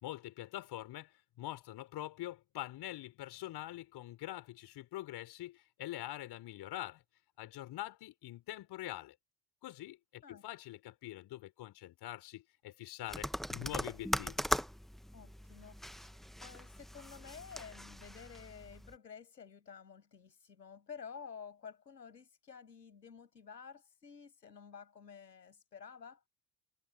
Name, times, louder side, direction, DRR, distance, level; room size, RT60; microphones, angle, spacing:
voice 1, 0.0-7.0 7.4-9.1 9.6-14.4, left 15 dB, 50° left, 4.3 m, -44 dB
sound 1, 13.1-18.9, equal, ahead, 1.2 m, -40 dB
voice 2, 15.1-26.2, left 6 dB, 85° left, 6.9 m, -52 dB
figure-of-eight pair, 65°, 48 cm